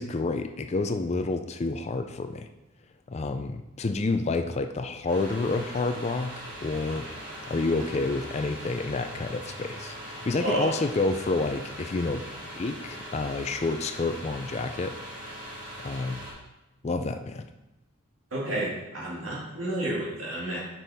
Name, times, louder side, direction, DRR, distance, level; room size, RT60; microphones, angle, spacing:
voice 1, 0.0-2.5 3.1-12.2 12.6-15.0 15.2-15.4 15.8-16.2 16.8-17.5, left 3 dB, 30° left, 8 dB, 0.4 m, -29 dB
sound 1, 5.1-16.3, equal, 40° right, 2.4 m, -41 dB
voice 2, 18.3-20.6, right 1 dB, 80° right, -5 dB, 2.4 m, -30 dB
6.6 x 5.7 x 3.5 m, 0.97 s
head